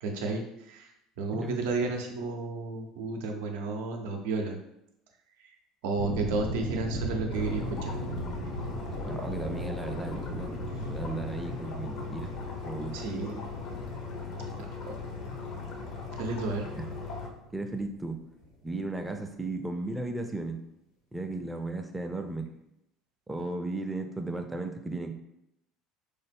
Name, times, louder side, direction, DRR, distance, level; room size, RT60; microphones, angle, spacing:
voice 1, 0.0-4.6 5.8-7.9 12.9-13.5 14.6-14.9 16.2-16.6, right 3 dB, 65° right, 3 dB, 0.5 m, -32 dB
sound 1, 5.9-18.5 18.8-19.2, equal, 85° left, 0.9 m, -38 dB
sound 2, 7.3-17.3, left 4 dB, 55° left, 0.6 m, -39 dB
voice 2, 9.0-12.3 12.6-13.0 16.7-16.8 17.5-18.2 18.6-20.6 21.1-22.5 23.3-25.1, right 2 dB, 10° right, 5 dB, 0.4 m, -35 dB
3.3 x 2.0 x 3.4 m, 0.82 s
figure-of-eight pair, 65°, 0 cm